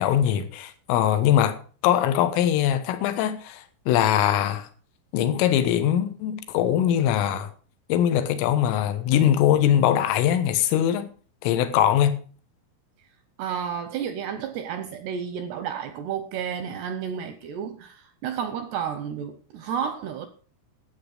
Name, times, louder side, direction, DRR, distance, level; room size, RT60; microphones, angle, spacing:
voice 1, 0.0-1.6 1.8-4.7 5.1-7.5 7.9-11.1 11.4-12.2, left 10 dB, 80° left, 3.8 m, -22 dB
voice 2, 13.4-20.3, right 7 dB, 75° right, 2.5 m, -31 dB
12.5 x 8.7 x 6.5 m
omnidirectional pair, 5.8 m